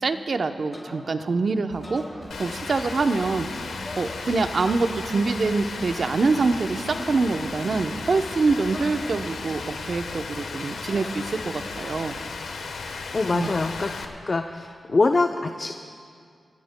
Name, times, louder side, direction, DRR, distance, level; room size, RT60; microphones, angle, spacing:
voice 1, 0.0-2.0 2.4-3.5 4.0-12.2 13.3-13.5, right 3 dB, 60° right, 7 dB, 0.8 m, -25 dB
sound 1, 0.7-1.4 1.7-2.9 3.9-4.8 5.9-6.4 6.9-7.4 8.7-9.6 10.9-11.9 13.4-14.2, left 1 dB, 30° left, 3.6 m, -44 dB
Drum kit, 1.7-10.0, right 1 dB, 30° right, 4.2 m, -47 dB
Rain, 2.3-14.1, left 4 dB, 85° left, 1.1 m, -35 dB
voice 2, 13.1-13.9 14.3-15.7, left 3 dB, 50° left, 5 dB, 0.6 m, -23 dB
26.5 x 17.0 x 2.2 m, 2.3 s
cardioid pair, 50°, 0 cm